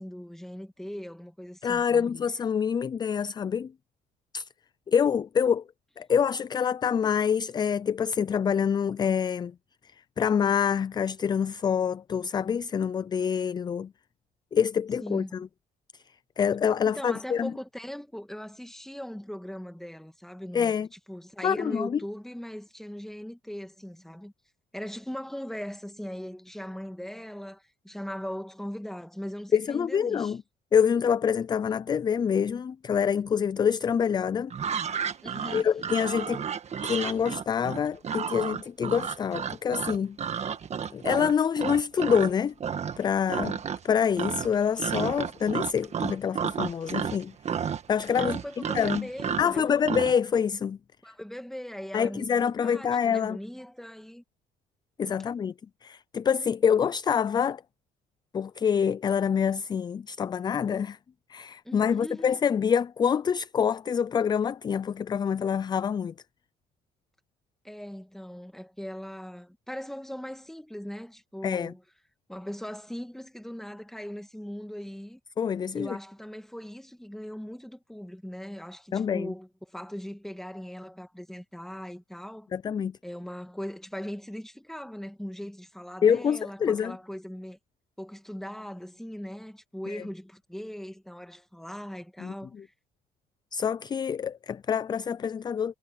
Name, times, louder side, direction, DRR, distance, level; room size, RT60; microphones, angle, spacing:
voice 1, 0.0-2.1 15.0-15.4 16.8-24.3 24.7-30.3 35.2-35.7 48.2-49.7 51.0-54.2 61.6-62.3 67.6-71.8 72.3-75.2 75.7-82.5 83.0-87.6 88.0-92.7, equal, ahead, 2.4 m, -39 dB
voice 2, 1.6-3.7 4.3-4.5 4.9-5.6 6.0-9.5 10.2-13.9 14.5-15.5 16.4-17.5 20.5-20.9 21.4-22.0 29.5-30.4 30.7-34.5 35.5-36.4 36.8-40.5 40.9-42.5 43.0-43.6 43.8-47.3 47.6-48.4 48.7-49.1 49.4-50.8 51.9-53.4 55.0-55.5 55.8-57.6 58.3-61.0 61.3-66.1 71.4-71.7 75.4-76.0 78.9-79.3 82.5-83.0 86.0-87.0 89.9-90.0 92.2-92.6 93.5-95.7, left 7 dB, 25° left, 0.4 m, -26 dB
sound 1, 34.5-42.3 42.6-43.0 43.3-43.9 44.2-50.1, right 7 dB, 40° right, 1.6 m, -32 dB
cardioid pair, 110°, 17 cm